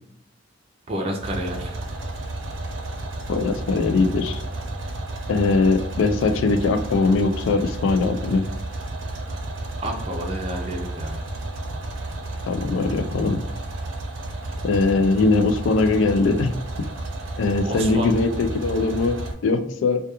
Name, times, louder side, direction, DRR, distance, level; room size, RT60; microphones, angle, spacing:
voice 1, 0.9-1.8 9.8-11.3 17.1-17.3 17.6-18.1, right 1 dB, 30° right, 0 dB, 0.3 m, -30 dB
sound 1, 1.2-19.3, right 2 dB, 80° right, 0.5 m, -32 dB
voice 2, 3.3-4.4 5.3-8.4 12.5-13.4 14.6-16.5 17.4-20.1, left 3 dB, 80° left, 7 dB, 0.3 m, -21 dB
2.2 x 2.2 x 2.8 m, 0.77 s
head